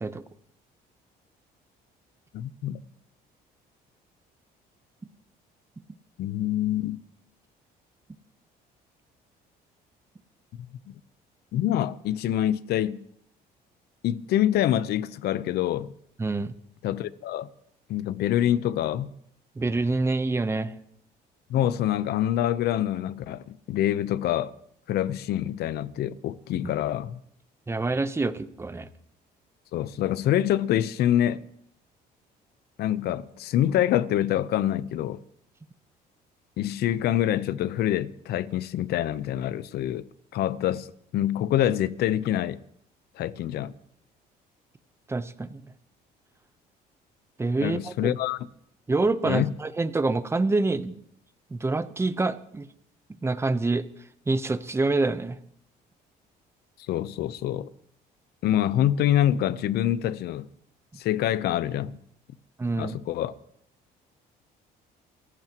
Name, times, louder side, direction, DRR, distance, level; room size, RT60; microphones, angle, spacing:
voice 1, 2.3-2.8 6.2-7.0 10.9-11.0 11.5-13.0 14.0-15.9 16.8-17.5 17.9-19.1 21.5-24.5 24.9-27.2 29.7-31.4 32.8-35.2 36.6-40.0 40.3-40.9 41.1-42.6 43.2-43.7 47.6-48.5 49.2-49.5 56.9-57.7 58.4-60.5 61.0-62.0 62.8-63.3, left 12 dB, 70° left, 0.8 m, -26 dB
voice 2, 16.2-16.5 19.6-20.7 27.7-28.9 45.1-45.6 47.4-48.1 48.9-51.0 51.5-52.7 53.2-53.9 54.3-55.4 62.6-62.9, right 3 dB, 15° right, 0.9 m, -26 dB
28.5 x 15.0 x 3.0 m
cardioid pair, 110°, 17 cm